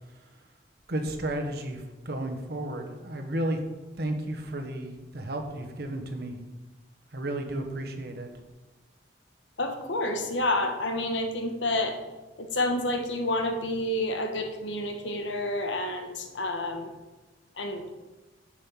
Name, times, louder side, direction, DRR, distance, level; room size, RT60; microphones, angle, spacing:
voice 1, 0.9-3.6 4.0-6.4 7.1-8.3, right 1 dB, 60° right, 4 dB, 1.3 m, -33 dB
voice 2, 9.6-12.0 12.4-16.9 17.6-17.9, left 1 dB, 85° left, 4 dB, 1.4 m, -29 dB
7.2 x 6.5 x 7.3 m, 1.1 s
head